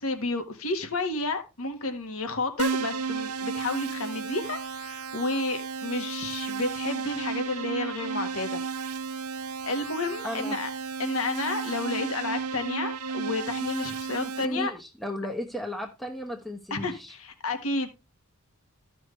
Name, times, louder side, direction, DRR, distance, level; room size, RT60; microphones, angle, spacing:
voice 1, 0.0-8.6 9.6-10.7 11.0-14.7 16.7-17.9, left 2 dB, 70° left, 1.6 m, -31 dB
Keyboard (musical), 2.6-14.5, right 5 dB, 85° right, 0.7 m, -33 dB
voice 2, 10.2-10.6 14.2-17.1, equal, ahead, 1.0 m, -35 dB
14.0 x 6.2 x 3.2 m
head